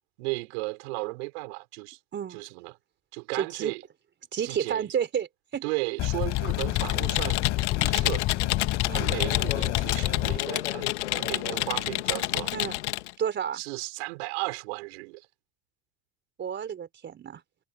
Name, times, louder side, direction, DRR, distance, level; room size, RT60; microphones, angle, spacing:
voice 1, 0.2-2.0 2.3-2.8 3.1-3.8 4.4-4.9 5.6-7.4 7.7-8.5 8.9-12.5 13.5-15.3, right 28 dB, 70° right, 4.8 m, -35 dB
voice 2, 3.3-3.7 4.3-5.3 5.5-5.6 8.9-9.1 12.5-12.8 13.2-13.6 16.4-17.4, right 8 dB, 30° right, 3.9 m, -30 dB
sound 1, 6.0-10.4, left 17 dB, 55° left, 4.7 m, -28 dB
Computer keyboard, 6.3-13.1, left 16 dB, 85° left, 1.7 m, -29 dB
hypercardioid pair, 100°, 34 cm